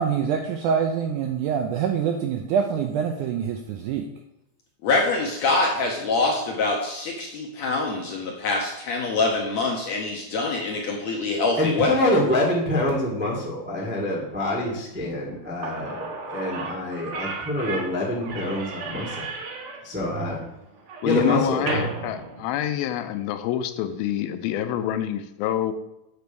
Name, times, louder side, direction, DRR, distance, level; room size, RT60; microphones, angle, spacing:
voice 1, 0.0-4.1, right 7 dB, 80° right, 4 dB, 1.8 m, -25 dB
voice 2, 4.8-11.9, left 3 dB, 70° left, 0 dB, 1.7 m, -25 dB
voice 3, 11.6-19.1 19.8-20.4 21.0-21.6, left 1 dB, 10° right, -3 dB, 0.5 m, -26 dB
Slam / Squeak, 15.3-15.4 15.6-23.1, right 4 dB, 65° right, 1.3 m, -34 dB
voice 4, 21.0-25.7, left 11 dB, 90° left, 10 dB, 2.5 m, -26 dB
8.3 x 4.6 x 6.9 m, 0.86 s
omnidirectional pair, 4.2 m